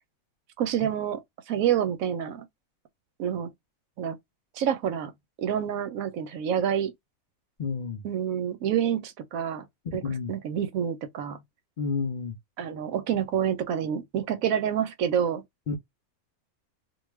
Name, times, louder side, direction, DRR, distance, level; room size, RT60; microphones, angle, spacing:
voice 1, 0.6-2.4 3.2-3.5 4.0-4.2 4.6-5.1 5.4-6.9 8.0-9.7 9.9-10.0 10.3-11.4 12.6-15.4, right 9 dB, 75° right, 1.0 m, -28 dB
voice 2, 7.6-8.0 10.0-10.3 11.8-12.4 15.7-15.8, left 5 dB, 60° left, 0.5 m, -30 dB
2.4 x 2.3 x 3.1 m
omnidirectional pair, 1.5 m